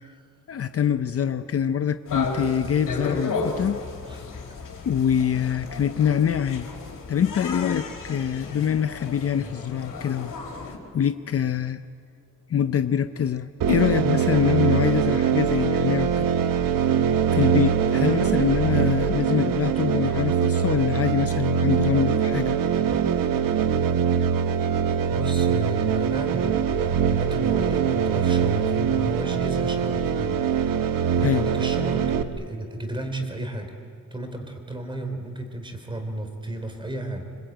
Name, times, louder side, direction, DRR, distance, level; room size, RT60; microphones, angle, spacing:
voice 1, 0.5-3.8 4.9-6.7 7.1-10.3 10.9-11.8 12.5-16.3 17.3-22.6 31.2-31.4, left 8 dB, 45° left, 11 dB, 0.6 m, -24 dB
sound 1, 2.1-10.8, left 3 dB, 75° left, 4.5 m, -33 dB
sound 2, 13.6-32.2, right 7 dB, 90° right, 1.3 m, -23 dB
voice 2, 25.1-30.7 31.1-33.7 34.1-37.3, right 1 dB, 15° right, 5 dB, 3.3 m, -33 dB
26.0 x 25.5 x 9.1 m, 2.4 s
wide cardioid pair, 170°, 32 cm